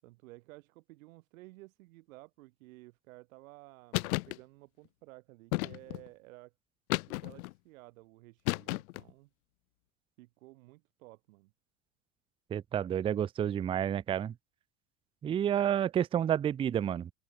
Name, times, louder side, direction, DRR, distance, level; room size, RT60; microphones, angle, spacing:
voice 1, 0.0-6.5 7.2-9.3 10.2-11.5, right 21 dB, 75° right, 7.7 m, -54 dB
sound 1, 3.9-4.4 5.5-6.1 6.9-7.5 8.5-9.1, left 21 dB, 80° left, 1.0 m, -33 dB
voice 2, 12.5-14.3 15.2-17.1, right 9 dB, 15° right, 0.5 m, -30 dB
open air
supercardioid pair, 150°, 41 cm